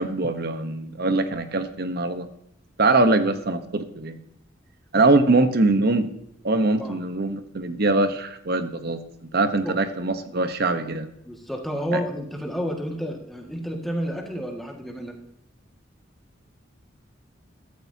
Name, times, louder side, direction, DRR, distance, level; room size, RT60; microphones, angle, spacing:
voice 1, 0.0-2.3 2.8-4.2 4.9-6.1 6.4-9.0 9.3-11.1 11.9-12.0, right 2 dB, 55° right, 9 dB, 1.1 m, -22 dB
voice 2, 4.9-5.3 6.8-7.0 9.6-9.8 11.3-15.2, equal, ahead, 1 dB, 1.9 m, -31 dB
14.0 x 13.5 x 2.8 m, 0.76 s
head